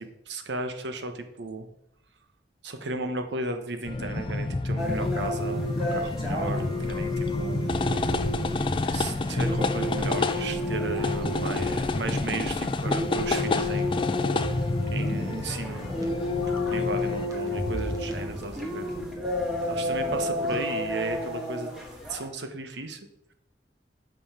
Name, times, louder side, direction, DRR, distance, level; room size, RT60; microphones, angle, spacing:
voice 1, 0.0-1.7 2.6-8.1 8.9-14.1 14.9-16.1 16.7-18.9 19.7-21.7 22.1-23.0, right 3 dB, 80° right, 7 dB, 0.9 m, -35 dB
sound 1, 3.8-17.3, left 2 dB, 30° left, 0.4 m, -29 dB
sound 2, 4.8-22.2, left 2 dB, 5° right, 1.7 m, -32 dB
sound 3, 5.0-20.6, equal, 20° right, 1.1 m, -42 dB
5.7 x 5.3 x 6.6 m, 0.83 s
head